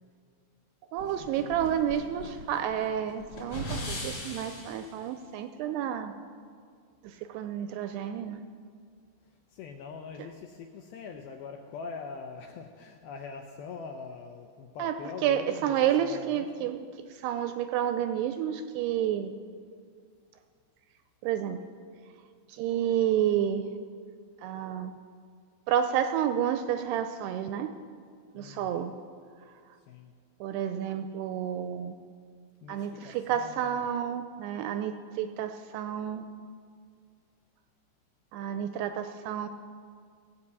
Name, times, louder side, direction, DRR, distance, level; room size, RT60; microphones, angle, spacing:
voice 1, 0.9-6.1 7.0-8.4 14.8-14.9 15.2-16.8 17.1-19.4 21.2-21.6 22.5-23.6 24.4-24.9 25.7-27.7 28.4-28.9 30.4-32.0 32.7-36.3 38.3-39.5, right 10 dB, 85° right, 9 dB, 2.4 m, -30 dB
sound 1, 1.0-4.9, equal, 40° left, 3.1 m, -39 dB
voice 2, 9.5-16.7 28.4-28.9 29.9-30.1 32.6-33.9, left 5 dB, 80° left, 4 dB, 2.2 m, -43 dB
17.0 x 5.7 x 8.1 m, 2.1 s
omnidirectional pair, 5.0 m